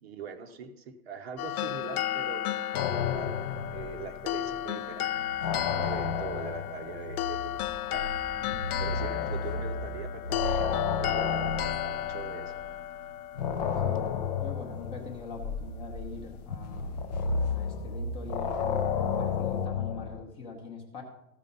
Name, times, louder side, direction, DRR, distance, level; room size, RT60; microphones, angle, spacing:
voice 1, 0.0-2.6 3.1-8.1 8.8-11.5 11.8-12.5, right 5 dB, 45° right, 8 dB, 0.9 m, -42 dB
sound 1, 1.4-14.6, left 12 dB, 80° left, 0.6 m, -34 dB
sound 2, 2.7-4.6 4.9-12.8 13.4-20.2, left 5 dB, 30° left, 0.5 m, -32 dB
voice 2, 14.4-18.9 19.2-21.0, left 4 dB, 10° left, 1 dB, 0.8 m, -43 dB
14.0 x 4.9 x 5.4 m, 0.88 s
hypercardioid pair, 160°, 44 cm